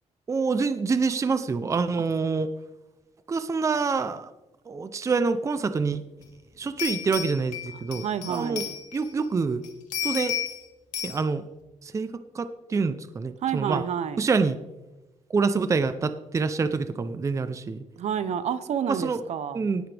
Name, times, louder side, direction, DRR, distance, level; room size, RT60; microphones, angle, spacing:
voice 1, 0.3-2.5 3.3-4.3 4.7-6.1 6.6-9.6 10.0-10.4 11.0-11.4 11.8-13.8 14.2-14.6 15.3-17.8 18.9-19.2 19.5-19.9, right 4 dB, 25° right, 11 dB, 0.6 m, -26 dB
sound 1, 6.2-6.3 6.8-9.3 9.6-10.6 10.9-11.2, left 9 dB, 80° left, 2.6 m, -32 dB
voice 2, 7.9-8.7 13.4-14.2 18.0-19.7, right 8 dB, 60° right, 13 dB, 0.9 m, -29 dB
19.0 x 14.0 x 3.5 m, 1.0 s
cardioid pair, 145°, 13 cm